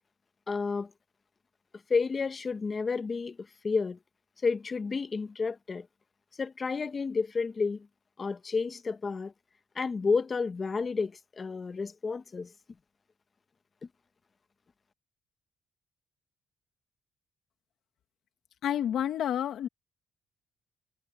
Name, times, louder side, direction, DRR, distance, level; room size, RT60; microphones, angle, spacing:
voice 1, 0.5-0.9 1.9-3.4 3.6-4.0 4.4-5.9 6.4-7.9 8.2-9.3 9.7-12.5, left 4 dB, 35° left, 1.1 m, -30 dB
voice 2, 18.6-19.7, left 10 dB, 75° left, 1.6 m, -29 dB
cardioid pair, 90°, 0 cm